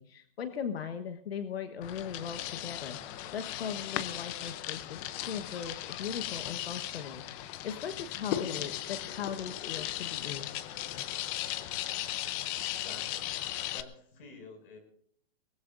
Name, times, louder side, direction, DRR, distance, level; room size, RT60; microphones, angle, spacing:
voice 1, 0.0-3.0 3.3-10.5, left 7 dB, 80° left, 7 dB, 1.3 m, -39 dB
sound 1, 1.8-13.8, left 13 dB, 25° left, 0.6 m, -37 dB
voice 2, 12.8-13.4 13.7-14.8, left 4 dB, 65° left, 4 dB, 6.5 m, -50 dB
22.0 x 19.5 x 2.6 m, 0.63 s
hypercardioid pair, 150°, 30 cm